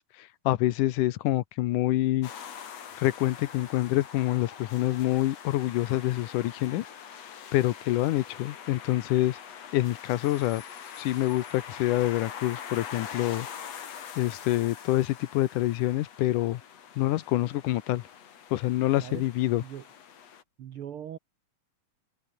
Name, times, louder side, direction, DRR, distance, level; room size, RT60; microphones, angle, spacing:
voice 1, 0.0-2.3 3.0-6.9 7.5-9.4 9.7-10.6 11.0-13.7 14.2-16.6 17.0-18.0 18.5-19.6, left 15 dB, 75° left, 2.3 m, -26 dB
sound 1, 2.2-20.4, left 8 dB, 55° left, 3.0 m, -44 dB
voice 2, 20.6-21.2, right 10 dB, 65° right, 1.4 m, -40 dB
omnidirectional pair, 3.9 m